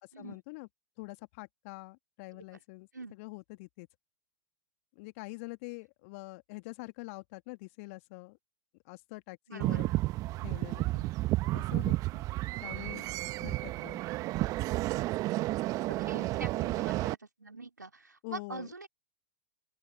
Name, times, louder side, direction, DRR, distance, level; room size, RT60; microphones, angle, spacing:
voice 1, 0.2-0.7 1.0-3.9 5.0-8.4 8.9-9.9 10.4-10.9 11.5-12.2 12.6-13.0 13.4-14.0 18.2-18.7, left 26 dB, 50° left, 1.9 m, -45 dB
voice 2, 9.5-9.9 10.9-11.1 15.9-18.9, right 3 dB, 85° right, 4.4 m, -44 dB
sound 1, 9.6-17.1, right 18 dB, 35° right, 1.3 m, -32 dB
open air
figure-of-eight pair, 95°, 10 cm